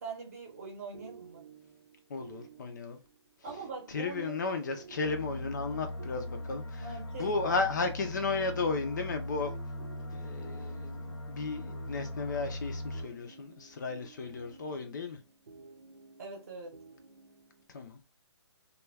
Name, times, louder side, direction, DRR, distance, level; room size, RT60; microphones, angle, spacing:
voice 1, 0.0-1.5 3.4-4.4 6.8-7.7 16.2-16.8, right 4 dB, 30° right, 0.7 m, -42 dB
sound 1, 0.9-17.7, right 5 dB, 90° right, 0.6 m, -54 dB
voice 2, 2.1-3.0 3.9-6.9 7.2-9.6 10.1-15.2 17.7-18.0, left 4 dB, 40° left, 0.4 m, -34 dB
sound 2, 5.0-13.0, left 1 dB, 90° left, 1.0 m, -40 dB
2.2 x 2.1 x 3.2 m
hypercardioid pair, 160°, 15 cm